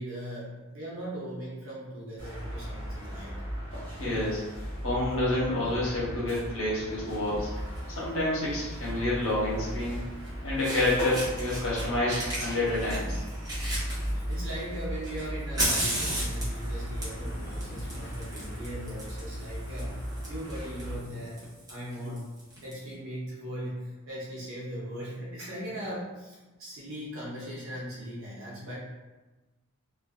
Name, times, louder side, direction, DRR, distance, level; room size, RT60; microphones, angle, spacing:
voice 1, 0.0-3.3 13.8-20.0 20.3-21.4 21.7-22.3 22.6-28.8, equal, 65° right, -6 dB, 0.6 m, -39 dB
sound 1, 2.2-21.0, equal, 25° left, 0.9 m, -37 dB
voice 2, 4.0-4.4 4.8-7.5 8.0-10.0 10.4-13.2, left 1 dB, 70° left, -6 dB, 0.8 m, -28 dB
Fire, 7.6-7.8 9.2-9.3 10.2-10.3 10.6-11.8 12.1-14.5 15.0-22.7, right 1 dB, 15° right, 0.6 m, -35 dB
2.5 x 2.3 x 2.3 m, 1.2 s
head